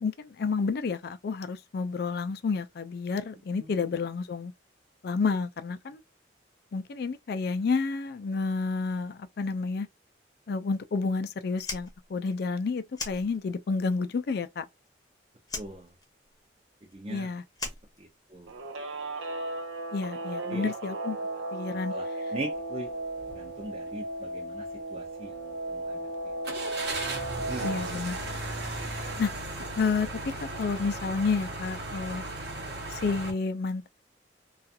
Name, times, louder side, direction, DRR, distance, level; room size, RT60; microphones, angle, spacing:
voice 1, 0.0-4.5 5.0-6.0 6.7-9.9 10.5-14.6 17.1-17.4 19.9-21.9 27.6-28.2 29.2-29.3 29.8-30.1 30.6-32.2 32.9-33.9, left 4 dB, 55° left, 0.4 m, -30 dB
Fire, 11.6-13.8 14.1-15.1 15.4-18.6, left 3 dB, 20° left, 0.7 m, -40 dB
voice 2, 15.5-15.9 16.9-17.3 18.0-18.5 20.5-21.0 21.7-22.1 22.3-22.9 23.3-24.6 24.9-26.0 27.4-27.7, right 1 dB, 30° right, 0.5 m, -40 dB
Guitar, 18.5-27.9, right 2 dB, 85° right, 0.5 m, -35 dB
sound 1, 23.2-23.4 23.9-24.0 26.4-33.3, right 2 dB, 60° right, 0.9 m, -36 dB
2.4 x 2.4 x 2.6 m
head